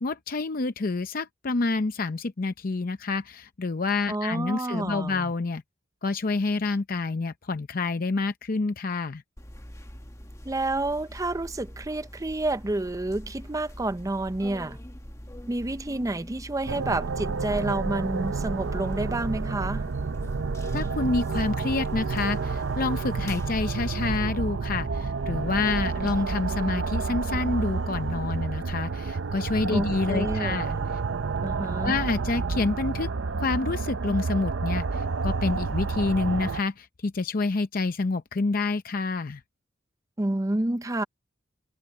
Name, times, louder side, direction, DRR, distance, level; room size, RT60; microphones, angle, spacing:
voice 1, 0.0-5.6 6.0-9.2 20.7-30.7 31.8-33.1 33.4-39.4, left 3 dB, 50° left, 0.6 m, -28 dB
voice 2, 4.1-5.3 10.4-14.8 15.5-19.9 29.7-30.9 31.4-32.0 40.2-41.0, right 2 dB, 20° right, 0.6 m, -29 dB
sound 1, 9.4-24.2, equal, 15° left, 1.6 m, -43 dB
sound 2, 16.7-36.6, right 4 dB, 85° right, 0.6 m, -29 dB
head